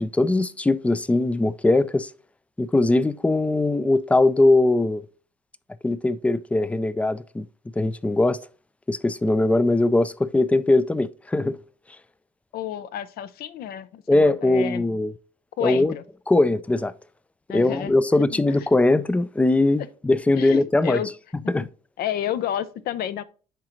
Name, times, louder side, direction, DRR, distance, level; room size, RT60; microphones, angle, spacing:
voice 1, 0.0-2.1 2.6-5.0 5.8-7.4 7.8-8.4 8.9-11.6 14.1-15.1 15.6-15.9 16.3-16.9 17.5-21.0 21.5-21.7, left 2 dB, 10° left, 0.3 m, -20 dB
voice 2, 12.5-14.8 15.6-16.0 17.5-18.7 20.3-21.1 21.4-21.7 22.0-23.2, left 10 dB, 65° left, 0.6 m, -31 dB
10.0 x 3.8 x 3.0 m
cardioid pair, 110°, 17 cm